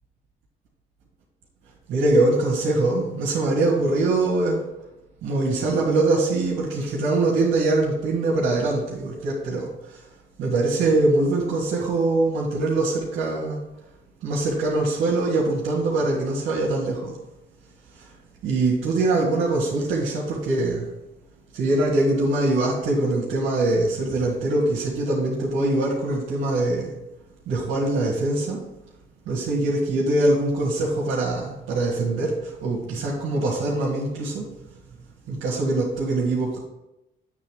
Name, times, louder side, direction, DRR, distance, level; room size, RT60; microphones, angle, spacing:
voice 1, 1.9-4.6 5.2-10.0 10.4-13.6 14.2-17.1 18.0-18.1 18.4-20.9 21.5-26.9 27.5-28.6 29.3-34.5 35.3-36.6, right 2 dB, 85° right, -7 dB, 1.8 m, -23 dB
8.4 x 3.8 x 4.9 m, 0.95 s
cardioid pair, 90°, 20 cm